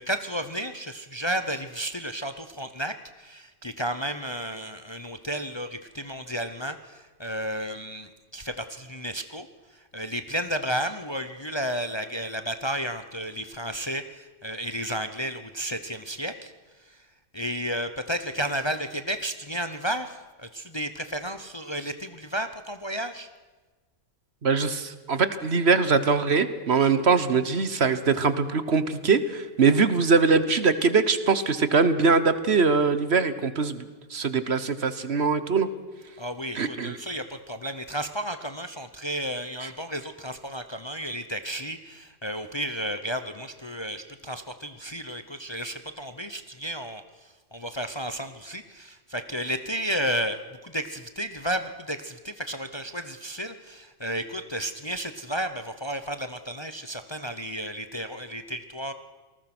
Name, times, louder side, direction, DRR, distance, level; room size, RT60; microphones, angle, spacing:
voice 1, 0.0-9.5 9.7-16.5 16.8-17.0 17.3-23.3 36.2-58.9, equal, 25° left, 9 dB, 0.9 m, -32 dB
voice 2, 24.4-33.8 34.1-35.7 36.5-36.9, right 4 dB, 55° right, 12 dB, 1.4 m, -22 dB
27.5 x 19.5 x 6.1 m, 1.3 s
omnidirectional pair, 1.3 m